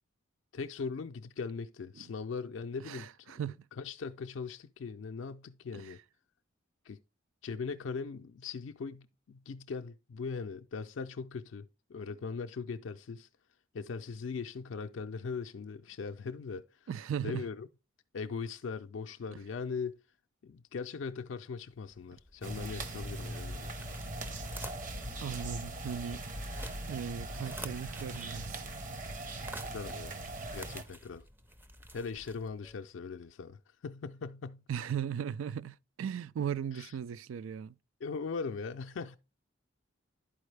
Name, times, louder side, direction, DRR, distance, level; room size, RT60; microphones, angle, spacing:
voice 1, 0.5-3.4 3.7-6.0 6.8-7.0 7.4-13.3 13.7-16.9 17.2-17.7 18.1-20.0 20.4-23.7 29.6-30.1 30.5-31.2 31.9-34.7 36.7-36.9 38.0-39.2, left 5 dB, 70° left, 0.4 m, -40 dB
voice 2, 2.9-3.6 5.7-5.9 16.9-17.4 25.2-26.3 26.9-28.6 34.7-37.8, right 8 dB, 85° right, 0.3 m, -37 dB
sound 1, 21.7-32.8, right 1 dB, 10° right, 0.5 m, -51 dB
sound 2, 22.4-30.8, right 1 dB, 40° right, 0.9 m, -40 dB
11.5 x 4.6 x 3.2 m
head